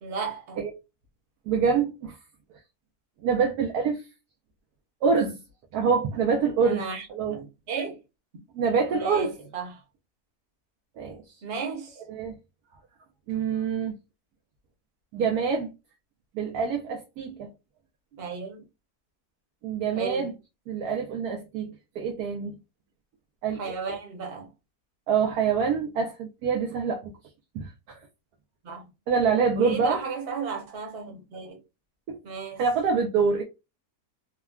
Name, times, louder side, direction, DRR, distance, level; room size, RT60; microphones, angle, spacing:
voice 1, 0.0-0.6 6.6-8.0 8.9-9.8 11.4-12.0 18.1-18.6 19.9-20.3 23.5-24.5 28.6-28.9 29.6-31.6 32.2-32.6, right 5 dB, 45° right, 1.1 m, -34 dB
voice 2, 1.5-2.2 3.2-4.1 5.0-5.4 5.7-6.8 7.1-7.3 8.5-9.3 11.0-11.2 12.1-12.3 13.3-14.0 15.1-15.7 16.3-17.5 19.6-20.3 20.7-22.5 23.4-23.6 25.1-27.1 27.5-28.0 29.1-30.0 32.1-32.2 32.6-33.4, right 5 dB, 80° right, 1.2 m, -25 dB
3.5 x 2.2 x 2.2 m
omnidirectional pair, 1.6 m